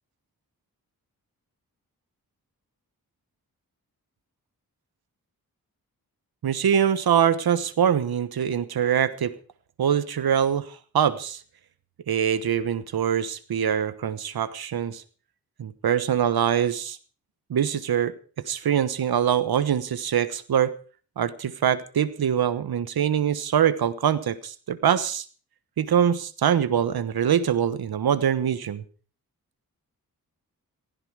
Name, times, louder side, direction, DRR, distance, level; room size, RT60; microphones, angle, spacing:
voice 1, 6.4-9.3 9.8-11.4 12.1-15.0 15.6-17.0 17.5-18.1 18.5-20.7 21.2-25.2 25.8-28.8, right 8 dB, 80° right, 16 dB, 1.2 m, -23 dB
16.0 x 15.0 x 4.8 m, 0.40 s
cardioid pair, 75°, 36 cm